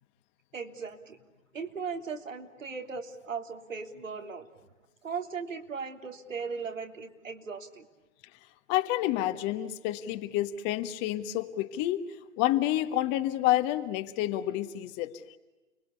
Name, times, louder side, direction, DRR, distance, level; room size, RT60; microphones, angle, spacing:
voice 1, 0.5-1.2 1.5-4.5 5.0-7.9, right 5 dB, 75° right, 5 dB, 3.4 m, -38 dB
voice 2, 8.7-12.0 12.4-15.4, left 14 dB, 30° left, 10 dB, 1.5 m, -29 dB
30.0 x 21.5 x 8.3 m, 1.1 s
figure-of-eight pair, 120°, 39 cm